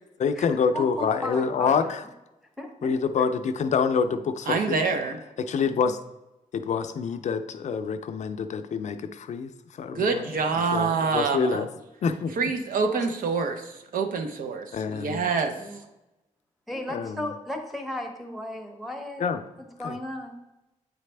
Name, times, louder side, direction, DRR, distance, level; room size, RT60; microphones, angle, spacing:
voice 1, 0.2-2.0 2.8-4.8 5.4-6.0 6.5-11.7 12.0-12.3 14.7-15.3 16.7-17.3 19.2-19.4 19.8-20.0, left 6 dB, 55° left, 8 dB, 0.4 m, -27 dB
voice 2, 0.7-1.9 2.6-3.2 10.2-10.4 12.9-13.1 15.6-15.8 16.7-19.2 19.8-20.3, left 1 dB, ahead, 2 dB, 0.8 m, -35 dB
voice 3, 4.5-5.2 9.9-11.6 12.4-15.5, right 4 dB, 90° right, 5 dB, 0.8 m, -26 dB
8.8 x 4.1 x 3.3 m, 0.96 s
wide cardioid pair, 155°, 14 cm